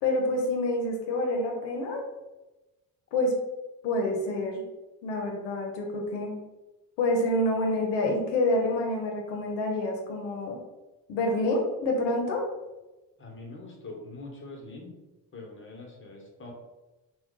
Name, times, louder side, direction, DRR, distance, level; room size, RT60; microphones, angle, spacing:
voice 1, 0.0-2.0 3.1-3.3 3.8-4.6 5.0-6.3 7.0-10.6 11.1-12.4, left 1 dB, 85° left, 1 dB, 0.6 m, -27 dB
voice 2, 13.2-14.9 15.3-16.5, left 2 dB, 30° left, 0 dB, 1.0 m, -43 dB
2.3 x 2.2 x 3.7 m, 1.1 s
supercardioid pair, 70°, 41 cm